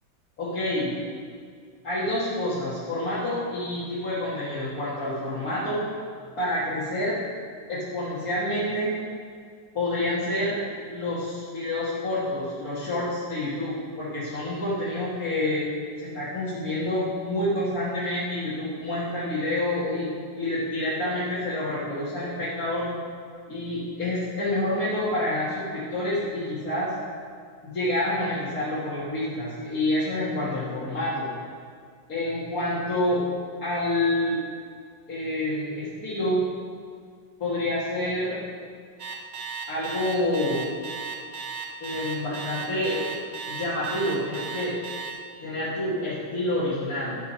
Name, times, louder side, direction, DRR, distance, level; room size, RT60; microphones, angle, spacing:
voice 1, 0.4-1.0 1.8-5.8 6.4-7.2 7.7-8.9 9.7-10.6 10.9-15.7 16.0-20.1 20.3-22.9 23.5-26.9 27.6-31.3 32.1-33.2 33.6-34.4 35.1-36.4 37.4-38.4 39.7-40.6 41.8-43.0 43.5-44.8 45.4-47.2, left 1 dB, 50° left, -11 dB, 2.2 m, -28 dB
Alarm, 39.0-45.1, right 6 dB, 45° right, 0.9 m, -35 dB
11.0 x 5.1 x 5.5 m, 2.1 s
omnidirectional pair, 2.1 m